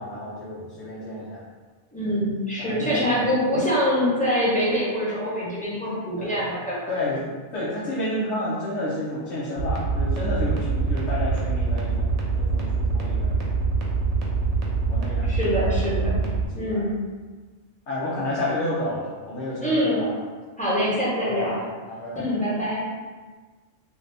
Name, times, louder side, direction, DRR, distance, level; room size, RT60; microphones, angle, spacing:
voice 1, 0.0-1.4 2.1-2.2 2.6-3.3 6.2-6.3 6.9-13.4 14.9-15.6 16.7-16.8 17.9-20.1 21.2-22.3, left 1 dB, 85° left, -9 dB, 1.0 m, -30 dB
voice 2, 1.9-6.9 15.2-16.2 16.5-17.0 19.6-20.0 20.6-21.5 22.1-22.8, equal, 10° left, -9 dB, 0.8 m, -24 dB
sound 1, 9.6-16.5, right 4 dB, 85° right, 1.0 m, -25 dB
2.7 x 2.5 x 3.3 m, 1.4 s
omnidirectional pair, 1.2 m